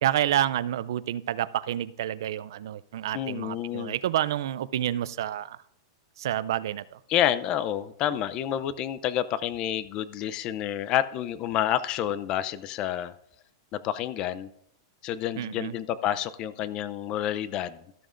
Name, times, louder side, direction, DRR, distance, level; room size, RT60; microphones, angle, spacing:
voice 1, 0.0-5.6 6.2-7.0 15.4-15.8, right 12 dB, 75° right, 18 dB, 0.4 m, -29 dB
voice 2, 3.1-3.9 7.1-13.1 13.7-14.5 15.0-17.8, left 11 dB, 35° left, 16 dB, 0.5 m, -29 dB
13.0 x 12.5 x 2.6 m, 0.76 s
supercardioid pair, 145°, 2 cm